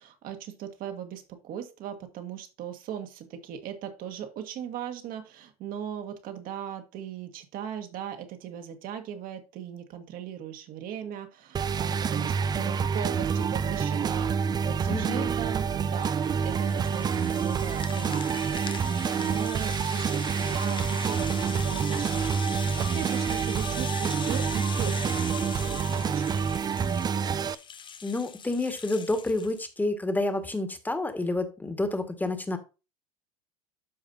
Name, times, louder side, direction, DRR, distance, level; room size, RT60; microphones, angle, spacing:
voice 1, 0.0-26.5, right 9 dB, 50° right, 6 dB, 1.6 m, -38 dB
sound 1, 11.5-27.5, right 6 dB, 20° right, 0.4 m, -28 dB
voice 2, 14.9-15.4 28.0-32.6, left 2 dB, 10° left, 8 dB, 1.6 m, -29 dB
Rattle (instrument), 15.5-29.7, left 7 dB, 25° left, 0.7 m, -41 dB
12.5 x 4.9 x 2.7 m, 0.30 s
hypercardioid pair, 85°, 19 cm